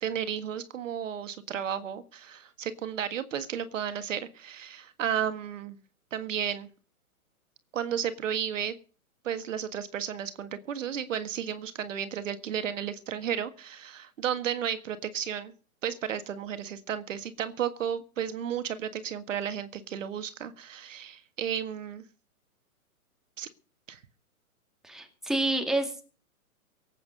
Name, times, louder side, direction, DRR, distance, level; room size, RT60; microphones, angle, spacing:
voice 1, 0.0-5.8 6.1-6.7 7.7-8.7 9.2-15.5 15.8-22.0 23.4-23.5 23.9-24.0, right 9 dB, 60° right, 11 dB, 1.7 m, -33 dB
voice 2, 24.8-26.0, right 2 dB, ahead, 4 dB, 2.3 m, -28 dB
18.0 x 8.6 x 6.7 m, 0.40 s
hypercardioid pair, 135°, 43 cm